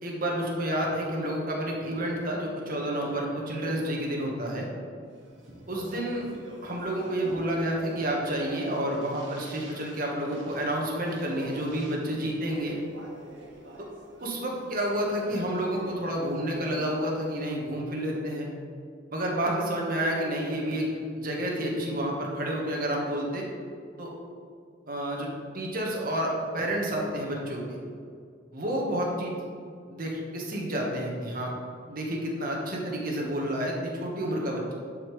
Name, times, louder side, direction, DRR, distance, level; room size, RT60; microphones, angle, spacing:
voice 1, 0.0-4.7 5.7-6.2 6.6-12.8 14.2-18.5 19.1-20.8 21.2-23.5 24.0-24.2 24.9-25.3 25.5-27.8 28.5-29.3 29.9-31.5 31.9-34.7, right 1 dB, 50° right, -2 dB, 1.5 m, -30 dB
Speech, 5.2-17.5, right 1 dB, 90° right, 1.6 m, -46 dB
11.0 x 5.1 x 3.3 m, 2.2 s
head